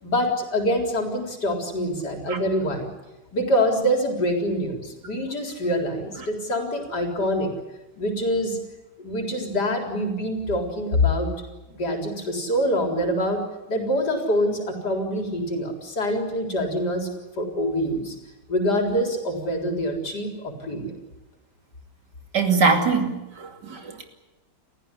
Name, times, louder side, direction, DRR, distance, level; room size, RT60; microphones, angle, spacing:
voice 1, 0.0-2.9 3.3-7.5 8.0-8.6 9.0-11.3 11.7-13.4 13.7-17.1 17.4-18.1 18.5-20.9, equal, 70° left, 3 dB, 4.6 m, -25 dB
voice 2, 22.3-24.1, right 4 dB, 75° right, 5 dB, 3.2 m, -22 dB
30.0 x 15.0 x 9.9 m, 1.1 s
omnidirectional pair, 1.8 m